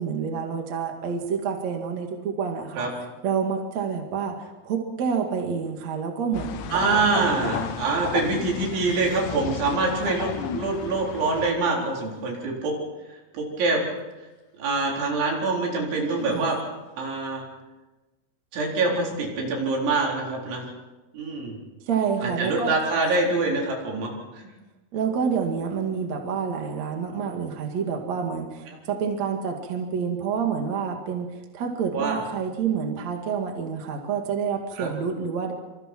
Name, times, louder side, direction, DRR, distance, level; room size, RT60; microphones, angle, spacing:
voice 1, 0.0-2.9 3.2-6.9 16.3-16.5 21.9-22.7 24.9-35.5, right 6 dB, 45° right, 3 dB, 2.5 m, -28 dB
sound 1, 6.3-11.5, left 10 dB, 75° left, 3.1 m, -34 dB
voice 2, 6.7-12.7 13.3-13.8 14.6-16.6 17.0-17.4 18.5-20.7 21.1-21.6 22.2-24.4 31.9-32.2 34.8-34.9, right 3 dB, 65° right, -1 dB, 6.5 m, -25 dB
sound 2, 8.1-9.3 9.9-10.8 11.2-12.1 14.1-14.2 16.0-16.9, left 6 dB, 50° left, 3.6 m, -40 dB
27.0 x 27.0 x 4.6 m, 1.1 s
omnidirectional pair, 5.8 m